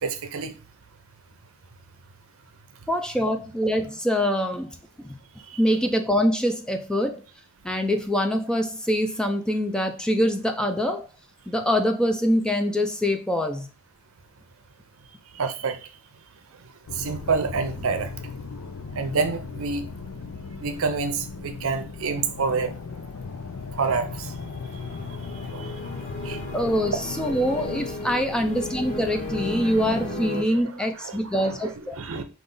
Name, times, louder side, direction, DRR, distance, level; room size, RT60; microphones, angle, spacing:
voice 1, 0.0-0.5 5.5-5.6 15.3-15.9 16.9-18.1 18.9-19.8 20.6-22.7 23.7-24.3 25.1-25.9 26.2-26.4 28.3-28.5 29.6-29.8 30.5-32.2, right 4 dB, 65° right, 0.6 m, -28 dB
voice 2, 2.9-4.8 5.6-7.2 7.6-11.1 11.5-13.7 26.5-32.0, equal, 5° left, 0.4 m, -24 dB
sound 1, 16.9-30.2, left 4 dB, 75° left, 0.5 m, -37 dB
sound 2, 23.9-30.4, left 1 dB, 35° left, 1.4 m, -35 dB
5.2 x 2.5 x 3.8 m
head